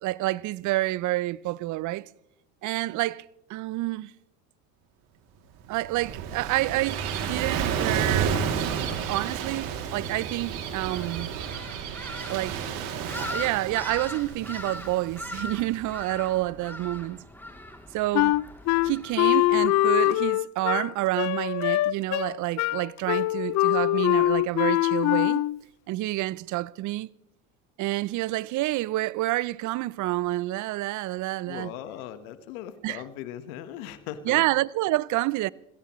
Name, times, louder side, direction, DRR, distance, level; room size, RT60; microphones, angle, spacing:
voice 1, 0.0-2.1 2.6-4.1 5.7-8.4 8.7-11.3 12.0-12.6 13.1-17.2 17.9-18.4 18.8-25.5 25.9-27.1 27.8-31.7 32.8-33.0 34.2-35.5, right 18 dB, 45° right, 0.6 m, -28 dB
Gull seagull / Waves surf, 5.6-16.2, right 7 dB, 65° right, 2.8 m, -31 dB
sound 1, 10.8-19.9, left 1 dB, 5° left, 2.9 m, -41 dB
Wind instrument woodwind instrument, 18.1-25.6, left 17 dB, 45° left, 0.5 m, -23 dB
voice 2, 31.5-34.4, left 11 dB, 75° left, 1.4 m, -39 dB
27.5 x 16.5 x 3.1 m
hypercardioid pair, 75°, 41 cm